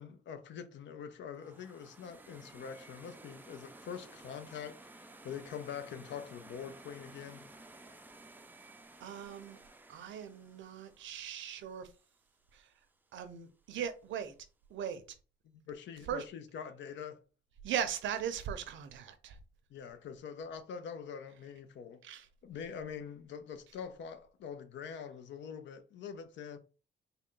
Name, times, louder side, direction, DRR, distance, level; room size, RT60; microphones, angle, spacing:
voice 1, 0.0-7.4 15.7-17.2 19.7-22.1 22.4-26.6, left 7 dB, 65° left, 0.6 m, -44 dB
sound 1, 1.3-12.4, right 2 dB, 10° right, 0.4 m, -55 dB
voice 2, 9.0-9.6 9.9-11.9 12.5-12.7 13.1-14.3 14.7-15.0 16.1-16.3 17.6-19.4 22.0-22.3, right 8 dB, 75° right, 0.7 m, -39 dB
3.8 x 2.2 x 3.7 m
cardioid pair, 90°, 20 cm